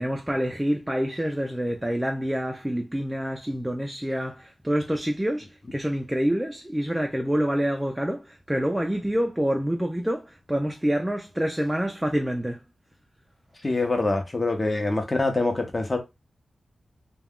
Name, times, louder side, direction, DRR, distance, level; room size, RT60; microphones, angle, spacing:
voice 1, 0.0-12.6, equal, 10° right, 0.4 m, -27 dB
voice 2, 13.6-16.0, left 2 dB, 25° left, 0.7 m, -25 dB
2.2 x 2.2 x 3.5 m
wide cardioid pair, 95°, 0 cm